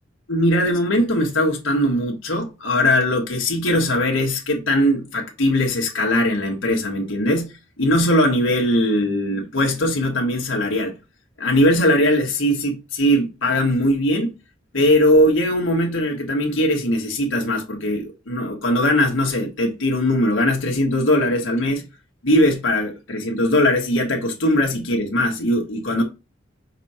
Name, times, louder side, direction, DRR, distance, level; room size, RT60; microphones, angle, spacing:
voice 1, 0.3-7.5 7.8-10.9 11.4-14.3 14.7-21.8 22.2-26.0, left 1 dB, 85° left, 1.4 m, -20 dB
6.1 x 4.1 x 4.3 m
head